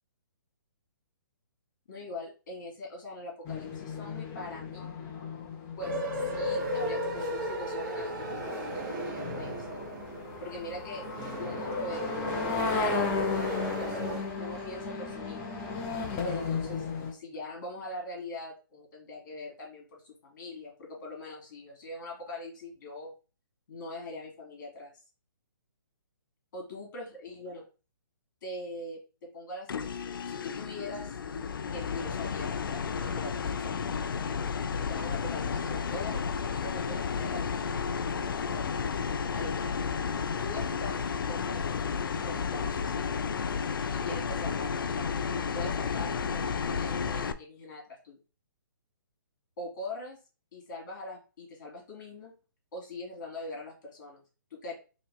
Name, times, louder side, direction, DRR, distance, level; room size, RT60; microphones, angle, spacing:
voice 1, 1.9-4.9 5.8-6.0 6.3-9.8 10.4-11.0 11.4-15.5 16.2-23.1 23.7-24.9 26.5-27.6 28.4-31.2 31.7-33.9 34.9-36.2 36.6-38.9 39.3-39.8 40.4-42.9 43.9-45.2 45.5-48.2 49.6-50.2 50.5-52.3 52.7-54.2 54.5-54.7, left 2 dB, 55° left, -1 dB, 2.5 m, -42 dB
sound 1, 3.5-17.1, left 4 dB, 20° left, 0.8 m, -35 dB
sound 2, 5.8-14.2, equal, 25° right, 1.1 m, -35 dB
sound 3, 29.7-47.3, left 6 dB, 70° left, 0.4 m, -32 dB
3.9 x 3.1 x 3.5 m, 0.33 s
hypercardioid pair, 145°, 12 cm